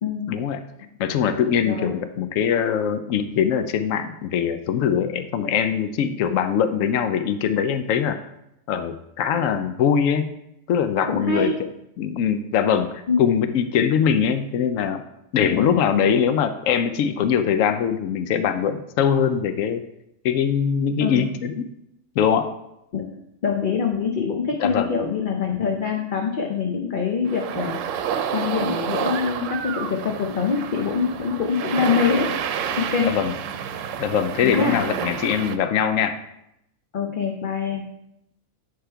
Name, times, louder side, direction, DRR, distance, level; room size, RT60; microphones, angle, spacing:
voice 1, 0.3-0.6 1.0-8.2 8.7-10.3 10.7-11.7 12.0-15.0 15.3-19.8 20.2-21.7 22.2-22.5 24.6-24.9 33.0-33.3 34.0-36.2, left 8 dB, 90° left, 10 dB, 1.0 m, -22 dB
voice 2, 1.6-2.0 11.1-11.5 13.1-13.3 15.4-15.7 21.0-21.2 22.9-23.1 23.4-27.8 28.3-32.3 32.7-33.1 34.4-34.8 36.9-37.9, left 5 dB, 45° left, 2 dB, 0.8 m, -24 dB
sound 1, 27.3-35.6, right 8 dB, 80° right, 0.9 m, -29 dB
10.0 x 3.6 x 4.5 m, 0.81 s
omnidirectional pair, 1.3 m